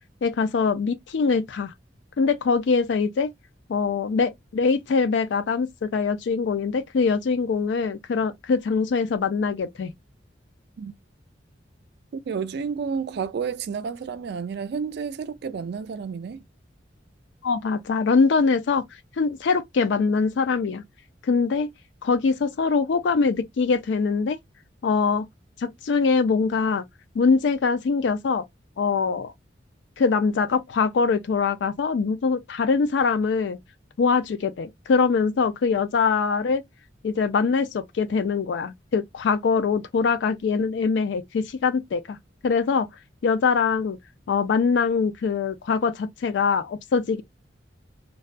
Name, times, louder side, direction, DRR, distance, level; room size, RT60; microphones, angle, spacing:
voice 1, 0.2-1.7 2.2-3.3 3.7-9.9 17.4-18.8 19.2-20.8 21.2-21.7 22.0-24.4 24.8-25.2 25.6-26.8 27.2-28.4 28.8-29.3 30.0-33.6 34.0-36.6 37.0-42.2 42.4-42.9 43.2-44.0 44.3-47.2, left 5 dB, 70° left, 0.4 m, -23 dB
voice 2, 12.3-16.4, right 6 dB, 60° right, 0.3 m, -30 dB
2.3 x 2.2 x 2.4 m
head